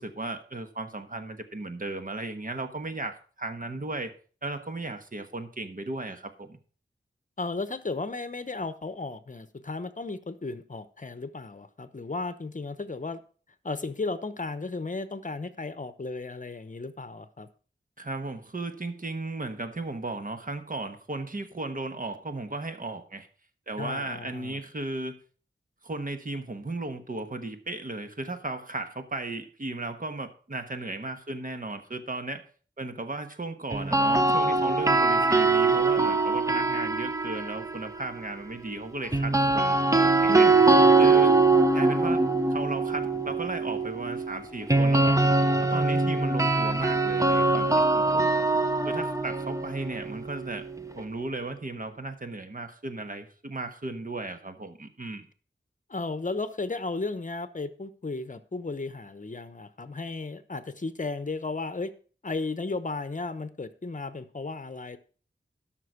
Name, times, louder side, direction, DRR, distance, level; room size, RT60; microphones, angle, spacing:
voice 1, 0.0-4.1 4.4-6.6 18.0-23.3 23.7-25.2 25.8-32.4 32.8-40.5 41.0-41.3 41.7-45.2 45.6-48.4 48.8-50.6 51.0-55.3, right 2 dB, 45° right, 1.3 m, -35 dB
voice 2, 7.4-13.2 13.6-17.5 23.8-24.6 40.3-40.9 55.9-61.9 62.2-65.0, left 3 dB, 45° left, 0.8 m, -34 dB
sound 1, 33.7-37.9 39.1-51.0, right 3 dB, 15° right, 0.7 m, -23 dB
12.5 x 6.0 x 5.0 m
wide cardioid pair, 75°, 19 cm